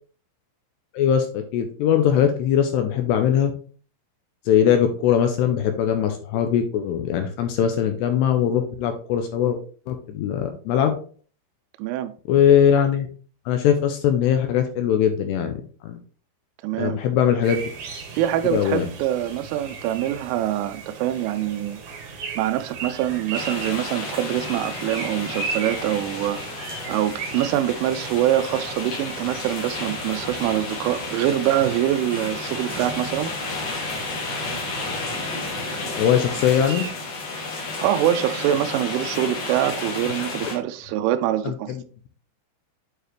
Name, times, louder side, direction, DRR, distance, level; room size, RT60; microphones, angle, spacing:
voice 1, 0.9-3.5 4.5-9.6 9.9-10.9 12.3-13.1 13.5-16.0 16.8-17.6 18.5-18.9 36.0-36.9 41.5-41.6, left 9 dB, 85° left, 2.5 m, -21 dB
voice 2, 11.8-12.1 16.6-17.0 18.1-21.8 22.4-26.6 26.9-33.3 37.8-41.8, right 12 dB, 90° right, 3.1 m, -24 dB
sound 1, 17.4-36.9, right 5 dB, 70° right, 1.9 m, -37 dB
sound 2, 23.3-40.6, left 3 dB, 55° left, 1.9 m, -32 dB
8.9 x 4.7 x 3.2 m
omnidirectional pair, 5.5 m